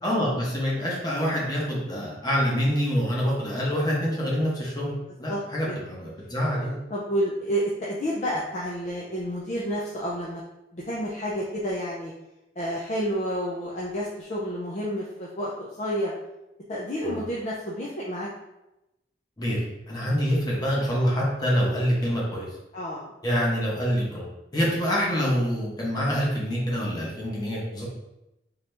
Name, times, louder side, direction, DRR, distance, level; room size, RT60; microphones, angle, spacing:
voice 1, 0.0-4.9 5.2-6.8 17.0-17.2 19.4-19.6 19.9-22.5 23.2-24.3 24.5-27.8, equal, 20° left, -5 dB, 1.1 m, -26 dB
voice 2, 6.9-10.4 10.7-12.1 12.6-16.1 16.7-18.3 22.7-23.1, equal, 40° left, -5 dB, 0.5 m, -30 dB
3.9 x 2.9 x 3.3 m, 0.94 s
head